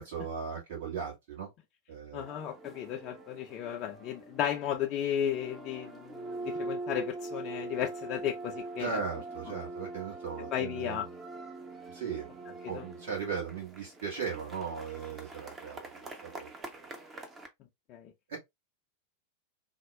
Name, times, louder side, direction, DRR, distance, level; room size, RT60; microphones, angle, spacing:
voice 1, 0.0-1.5 1.9-2.2 8.8-11.0 11.9-12.4 12.7-16.5 18.3-18.4, right 6 dB, 50° right, 1.3 m, -37 dB
voice 2, 2.1-9.0 10.5-11.1 12.6-12.8 17.9-18.1, left 10 dB, 35° left, 0.4 m, -34 dB
sound 1, 2.2-17.5, right 2 dB, 20° right, 0.7 m, -43 dB
4.2 x 2.1 x 2.2 m
figure-of-eight pair, 90°, 0 cm